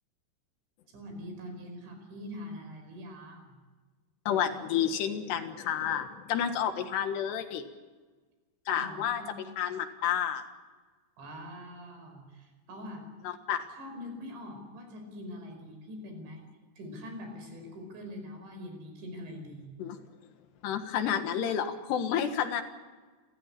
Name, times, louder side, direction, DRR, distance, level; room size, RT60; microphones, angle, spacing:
voice 1, 0.9-3.6 8.7-9.3 11.2-13.1 13.8-16.4 16.8-19.8, left 1 dB, 85° right, 4 dB, 7.5 m, -43 dB
voice 2, 4.3-7.7 8.7-9.2 9.6-10.4 13.3-13.7 19.8-20.0 20.6-22.6, left 9 dB, 70° left, 7 dB, 3.5 m, -30 dB
29.5 x 14.5 x 10.0 m, 1.4 s
omnidirectional pair, 5.1 m